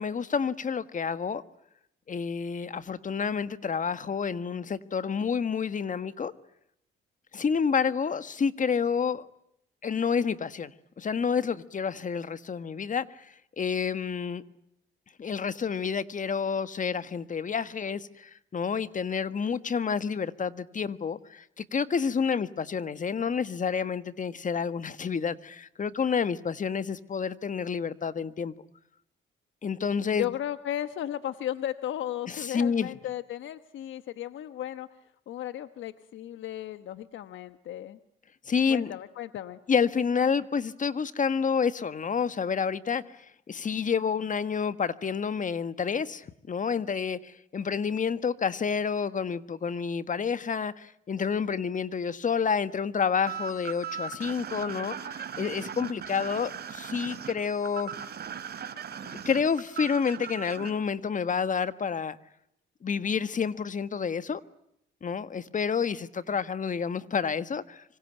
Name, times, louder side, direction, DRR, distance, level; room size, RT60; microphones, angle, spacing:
voice 1, 0.0-1.4 2.1-6.3 7.3-9.3 9.8-10.7 11.0-13.1 13.6-14.4 15.2-28.5 29.6-30.3 32.3-32.9 38.5-38.9 39.7-43.0 43.5-57.9 59.0-62.2 62.8-64.4 65.0-67.8, left 6 dB, 40° left, 1.5 m, -29 dB
voice 2, 30.2-34.9 35.3-38.0 38.7-39.6, left 11 dB, 75° left, 1.2 m, -35 dB
sound 1, 53.3-60.7, right 7 dB, 55° right, 3.3 m, -38 dB
25.5 x 25.5 x 9.0 m
cardioid pair, 90°, 20 cm